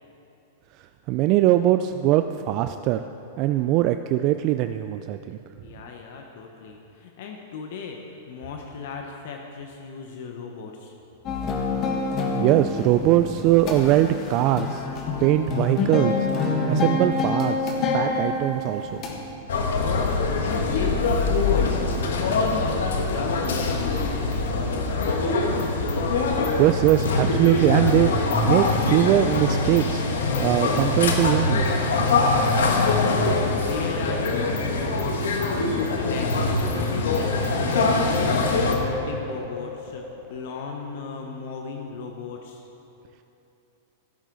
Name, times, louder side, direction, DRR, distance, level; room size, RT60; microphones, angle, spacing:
voice 1, 1.1-3.0 3.4-5.4 12.3-14.8 15.2-16.1 16.7-18.9 26.6-28.1 28.4-30.1 30.4-31.7, right 13 dB, 45° right, 9 dB, 0.3 m, -21 dB
voice 2, 5.6-10.9 19.7-23.9 32.7-38.3 38.7-42.6, left 5 dB, 65° left, 2 dB, 1.0 m, -37 dB
sound 1, 11.3-19.3, left 3 dB, 35° left, 1.5 m, -27 dB
sound 2, 19.5-38.8, left 3 dB, 85° left, 1.3 m, -23 dB
sound 3, 30.2-34.9 35.2-35.3 35.9-40.7, left 3 dB, 10° right, 1.7 m, -36 dB
15.0 x 8.2 x 4.0 m, 2.9 s
hypercardioid pair, 130°, 0 cm